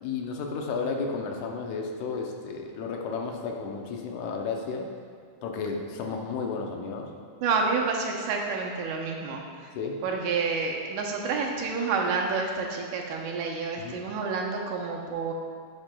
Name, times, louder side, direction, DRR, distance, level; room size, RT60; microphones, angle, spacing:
voice 1, 0.0-4.9 5.4-7.1 9.8-10.0 13.8-14.0, left 4 dB, 80° left, 2 dB, 2.0 m, -32 dB
voice 2, 7.4-9.4 10.0-15.3, right 4 dB, 85° right, 0 dB, 2.4 m, -29 dB
11.5 x 5.9 x 2.2 m, 2.1 s
omnidirectional pair, 3.6 m